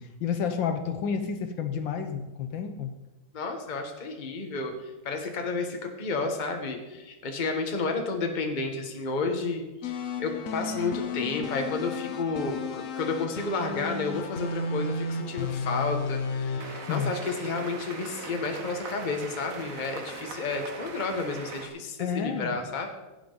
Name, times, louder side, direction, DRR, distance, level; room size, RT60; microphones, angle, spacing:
voice 1, 0.0-2.9 16.9-17.1 22.0-22.6, left 7 dB, 70° left, 7 dB, 1.5 m, -30 dB
voice 2, 3.3-22.9, left 3 dB, 30° left, 3 dB, 1.1 m, -31 dB
sound 1, 9.8-18.0, left 3 dB, 55° left, 0.9 m, -33 dB
sound 2, 16.6-21.7, right 4 dB, 50° right, 1.3 m, -40 dB
16.5 x 8.6 x 3.9 m, 1.1 s
omnidirectional pair, 2.3 m